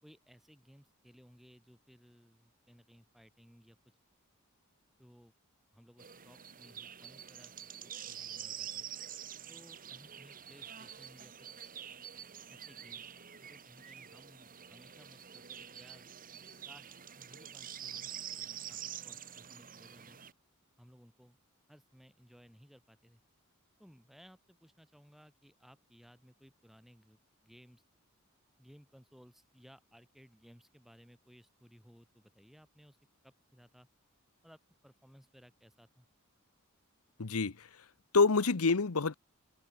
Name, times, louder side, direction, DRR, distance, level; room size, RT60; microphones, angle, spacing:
voice 1, 0.0-3.8 5.0-5.3 5.7-7.5 7.8-8.9 9.5-11.7 12.5-13.1 13.4-16.1 16.7-20.2 20.8-21.4 21.7-23.2 23.8-27.8 28.6-33.0 33.2-33.9 34.4-36.1, equal, ahead, 4.4 m, -60 dB
sound 1, 6.0-20.3, right 9 dB, 40° right, 2.0 m, -47 dB
voice 2, 37.2-37.7 38.1-39.2, left 4 dB, 80° left, 1.0 m, -27 dB
head